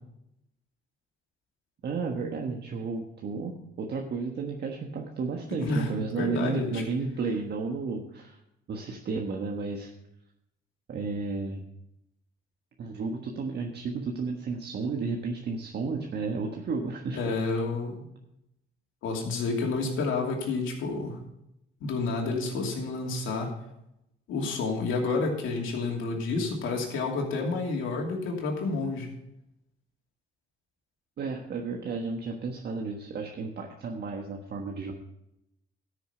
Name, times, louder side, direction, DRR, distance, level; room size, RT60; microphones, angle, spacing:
voice 1, 1.8-8.4 8.7-9.9 10.9-11.6 12.8-17.3 31.2-34.9, right 4 dB, 55° right, 1 dB, 1.3 m, -32 dB
voice 2, 5.6-6.8 17.1-18.0 19.0-21.2 21.8-23.6 24.3-29.1, left 3 dB, 85° left, 0 dB, 2.8 m, -30 dB
13.0 x 6.6 x 5.6 m, 0.82 s
cardioid pair, 90°, 20 cm